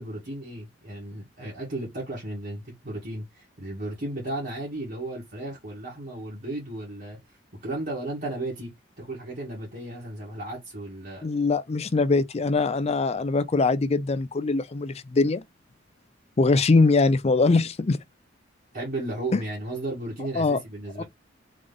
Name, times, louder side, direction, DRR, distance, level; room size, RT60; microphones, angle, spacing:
voice 1, 0.0-7.2 7.6-8.7 9.0-11.3 18.7-21.0, right 2 dB, 50° right, 1.9 m, -34 dB
voice 2, 11.2-15.4 16.4-18.0 19.3-19.4 20.4-20.6 21.0-21.1, left 3 dB, 35° left, 0.4 m, -22 dB
3.9 x 3.3 x 3.4 m
head